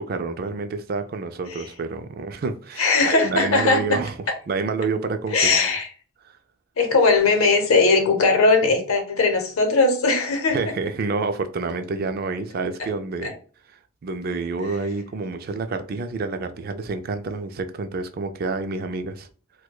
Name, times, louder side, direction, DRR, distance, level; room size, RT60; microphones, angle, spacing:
voice 1, 0.0-4.1 4.5-5.7 10.5-13.3 14.0-19.3, right 3 dB, 45° right, 0.3 m, -28 dB
voice 2, 2.8-4.0 5.3-5.9 6.8-10.6 13.2-13.3, left 3 dB, 85° left, 0.8 m, -19 dB
4.6 x 2.2 x 2.2 m
head